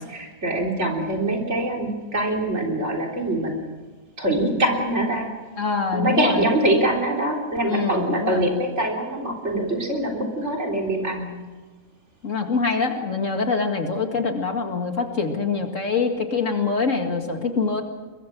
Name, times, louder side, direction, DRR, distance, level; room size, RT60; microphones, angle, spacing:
voice 1, 0.1-3.5 4.2-5.3 5.9-11.3, right 1 dB, 50° right, 0 dB, 4.1 m, -24 dB
voice 2, 5.6-6.5 7.7-8.5 12.2-17.8, left 4 dB, 60° left, 4 dB, 2.4 m, -24 dB
23.5 x 21.5 x 6.1 m, 1.4 s
omnidirectional pair, 1.5 m